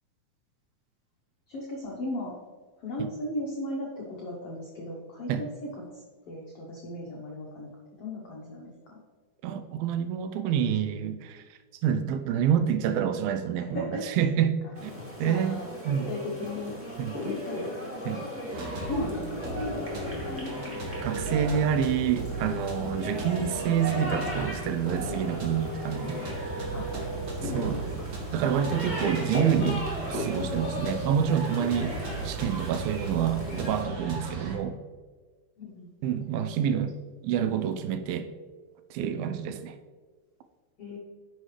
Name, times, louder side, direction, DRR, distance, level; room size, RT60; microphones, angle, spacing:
voice 1, 1.5-2.4 2.8-7.7 8.0-9.0 13.5-14.2 15.2-15.7 16.0-16.7 17.2-17.7 18.0-18.2 18.8-19.8 20.3-20.5 21.1-21.2 22.8-22.9 26.7-27.0 27.4-27.9 35.6-35.9 36.7-36.8 40.8-41.0, left 1 dB, 75° left, -3 dB, 1.3 m, -36 dB
voice 2, 9.4-11.4 11.8-14.9 15.2-16.1 17.0-17.2 18.1-18.2 21.0-26.2 27.5-27.8 28.3-32.0 32.2-34.8 36.0-36.9 37.2-38.3 38.9-39.7, right 8 dB, 80° right, 9 dB, 2.3 m, -27 dB
sound 1, 14.7-33.8, left 1 dB, 5° right, 1.2 m, -37 dB
sound 2, 18.5-34.6, right 2 dB, 55° right, 2.7 m, -36 dB
9.8 x 6.3 x 3.3 m, 1.4 s
omnidirectional pair, 4.4 m